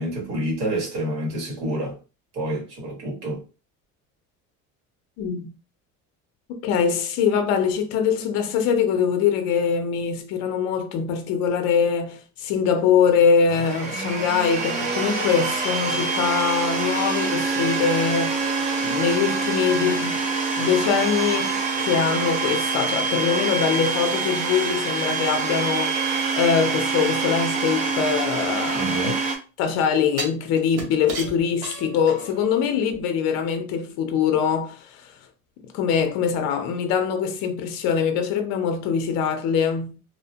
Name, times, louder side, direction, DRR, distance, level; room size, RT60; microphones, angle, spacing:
voice 1, 0.0-2.0 2.3-3.4 28.7-29.2, right 1 dB, 75° right, 1.6 m, -28 dB
voice 2, 5.2-5.5 6.5-18.4 18.8-20.2 20.5-29.1 29.6-35.1 35.7-40.0, left 7 dB, 55° left, 0.5 m, -23 dB
Domestic sounds home sounds, 13.5-29.4, right 4 dB, 25° right, 0.4 m, -25 dB
sound 1, 28.2-29.3 30.2-32.5 32.9-33.0, right 3 dB, 50° right, 0.8 m, -35 dB
2.7 x 2.1 x 2.7 m
cardioid pair, 180°, 31 cm